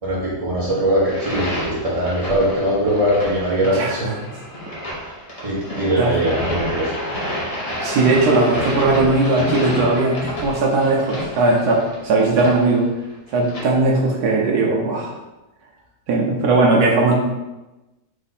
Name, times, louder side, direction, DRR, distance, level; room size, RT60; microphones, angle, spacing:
voice 1, 0.0-4.1 5.4-7.0, equal, 20° right, -7 dB, 1.4 m, -21 dB
sound 1, 1.0-13.6, equal, 25° left, 0.9 m, -30 dB
voice 2, 3.7-4.1 6.0-6.2 7.8-12.8 13.3-15.1 16.1-17.2, right 2 dB, 80° right, -2 dB, 1.2 m, -18 dB
3.5 x 3.2 x 4.1 m, 1.0 s
omnidirectional pair, 1.7 m